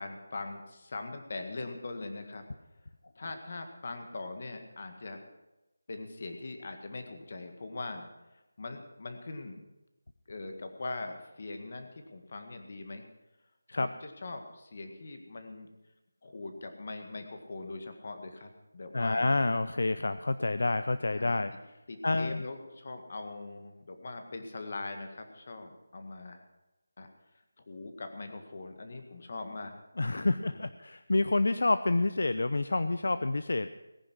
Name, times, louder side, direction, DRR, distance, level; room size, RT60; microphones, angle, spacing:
voice 1, 0.0-2.5 3.2-5.2 5.9-8.1 8.6-9.6 10.3-13.1 13.7-15.7 16.2-19.3 21.1-21.4 21.9-26.4 27.0-27.1 27.6-29.8 30.1-30.7, left 3 dB, 35° left, 6 dB, 1.8 m, -41 dB
voice 2, 18.9-21.8 22.0-22.4 30.0-33.7, left 2 dB, 60° left, 11 dB, 0.6 m, -28 dB
18.5 x 10.5 x 6.1 m, 1.0 s
figure-of-eight pair, 175°, 0 cm